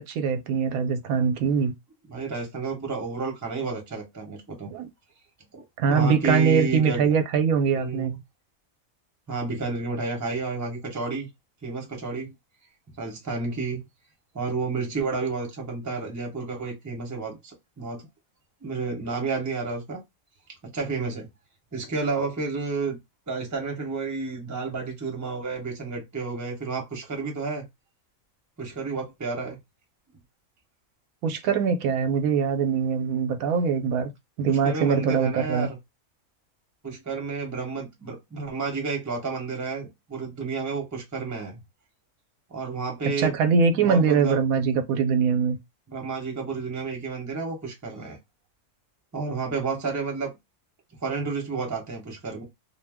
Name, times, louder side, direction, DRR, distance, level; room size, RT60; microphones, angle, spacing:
voice 1, 0.0-1.7 4.7-4.9 5.8-8.1 31.2-34.1 34.4-35.7 43.2-45.6, right 6 dB, 85° right, 1.0 m, -23 dB
voice 2, 2.1-4.7 5.5-7.1 7.7-8.2 9.3-11.3 11.6-12.3 13.0-13.9 14.3-18.1 18.6-20.0 20.7-21.3 21.7-23.0 23.3-27.7 28.6-29.6 34.5-35.8 36.8-41.6 42.5-43.4 43.7-44.4 45.9-48.2 49.1-50.3 51.0-52.4, right 4 dB, 15° right, 0.7 m, -31 dB
2.6 x 2.0 x 3.4 m
omnidirectional pair, 1.5 m